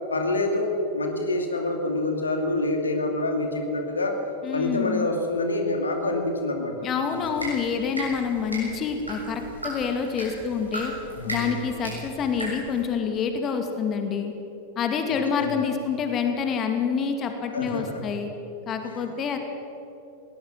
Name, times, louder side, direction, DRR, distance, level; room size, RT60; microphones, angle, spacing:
voice 1, 0.1-4.2 4.5-7.4 11.1-11.7 15.4-15.6 17.5-18.1 18.8-19.1, left 2 dB, 75° left, 4 dB, 2.5 m, -27 dB
voice 2, 4.4-5.1 6.8-10.9 11.3-14.3 14.8-18.3 18.7-19.4, left 6 dB, 30° left, 5 dB, 2.3 m, -27 dB
sound 1, 7.0-12.8, right 1 dB, 85° right, 6.7 m, -37 dB
21.0 x 19.0 x 7.6 m, 2.9 s
figure-of-eight pair, 90°, 0 cm